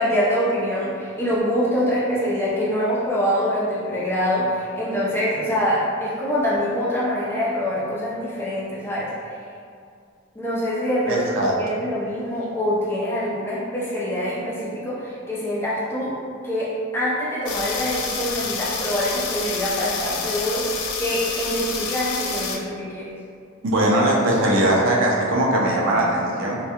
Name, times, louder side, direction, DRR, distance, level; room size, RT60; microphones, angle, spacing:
voice 1, 0.0-9.1 10.3-16.2 16.4-20.7 21.0-23.1, equal, 10° left, -8 dB, 0.4 m, -24 dB
voice 2, 11.1-11.5 23.6-26.6, right 1 dB, 60° right, -3 dB, 0.4 m, -20 dB
sound 1, 17.5-22.6, left 5 dB, 90° left, 0.3 m, -29 dB
2.2 x 2.1 x 2.8 m, 2.3 s
head